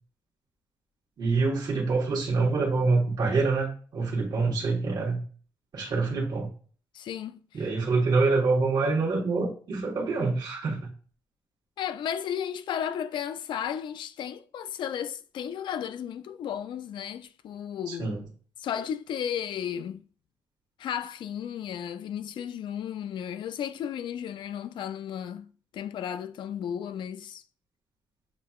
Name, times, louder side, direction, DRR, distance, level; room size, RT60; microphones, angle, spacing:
voice 1, 1.2-3.7 3.9-5.2 5.7-6.5 7.5-10.9 17.9-18.2, right 3 dB, 60° right, 1.3 m, -26 dB
voice 2, 6.9-7.7 11.8-18.2 18.6-20.0 20.8-27.4, left 9 dB, 80° left, 0.4 m, -34 dB
7.5 x 2.7 x 2.3 m
cardioid pair, 130°, 8 cm